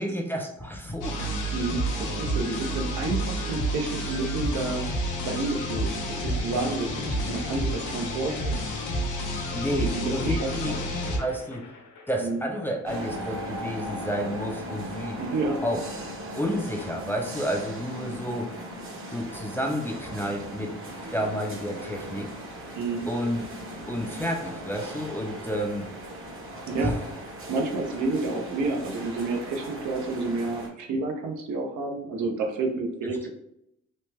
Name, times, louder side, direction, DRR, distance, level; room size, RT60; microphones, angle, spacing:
voice 1, 0.0-1.4 9.5-11.7 12.1-15.2 15.6-15.8 16.4-18.5 19.1-20.8 21.1-22.3 23.1-23.4 23.9-25.9 26.8-27.0 33.0-33.3, equal, 5° left, 0 dB, 0.5 m, -30 dB
sound 1, 1.0-11.2, equal, 90° left, 0.7 m, -30 dB
voice 2, 1.5-4.8 5.2-8.7 9.8-10.8 12.2-12.4 15.2-15.6 22.7-23.1 26.7-26.9 27.5-33.3, right 3 dB, 70° right, 3 dB, 0.7 m, -30 dB
sound 2, 9.5-15.1, left 3 dB, 70° left, 1.0 m, -47 dB
sound 3, 12.8-30.7, right 1 dB, 45° right, 1.0 m, -38 dB
3.1 x 2.1 x 3.1 m, 0.77 s
cardioid pair, 90°, 30 cm